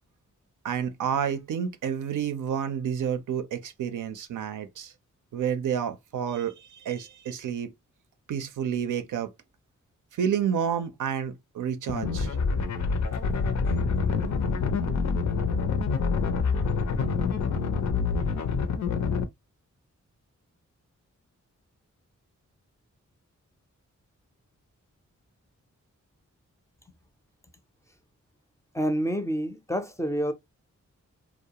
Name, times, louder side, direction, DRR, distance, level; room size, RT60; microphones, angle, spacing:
voice 1, 0.6-4.9 5.3-7.7 8.3-9.3 10.1-12.4 13.0-13.1 13.7-13.8 14.9-15.0, right 8 dB, 85° right, 0.5 m, -30 dB
sound 1, 11.9-19.2, left 5 dB, 70° left, 0.5 m, -26 dB
voice 2, 28.7-30.3, equal, 10° left, 0.4 m, -28 dB
2.3 x 2.0 x 2.8 m
cardioid pair, 55°, 30 cm